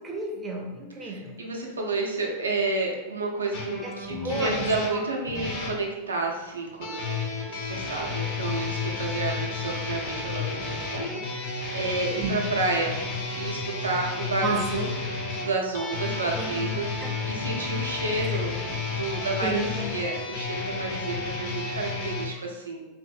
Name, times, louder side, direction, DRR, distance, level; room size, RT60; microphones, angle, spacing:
voice 1, 0.0-1.4 3.8-3.9 4.2-5.0 12.1-12.3 14.4-14.8 16.4-16.6 17.0-17.1 18.2-18.4 19.4-19.7, right 3 dB, 15° right, -1 dB, 0.5 m, -32 dB
voice 2, 1.0-7.2 7.5-13.0 13.3-14.9 15.3-16.9 17.3-18.6 19.0-22.9, right 3 dB, 75° right, 0 dB, 0.5 m, -30 dB
sound 1, 3.5-5.8 6.8-22.3, left 4 dB, 45° left, 0.5 m, -32 dB
2.6 x 2.5 x 2.4 m, 1.1 s
figure-of-eight pair, 90°, 0 cm